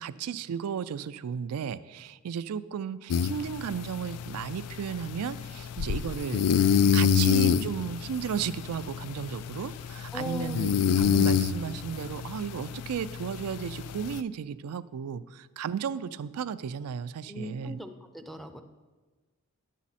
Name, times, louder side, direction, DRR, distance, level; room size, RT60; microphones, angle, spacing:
voice 1, 0.0-17.8, right 7 dB, 85° right, 15 dB, 0.4 m, -34 dB
sound 1, 3.1-14.2, left 7 dB, 85° left, 0.3 m, -27 dB
voice 2, 10.1-10.6 17.3-18.6, left 1 dB, ahead, 7 dB, 0.5 m, -38 dB
10.5 x 7.3 x 4.1 m, 1.3 s
head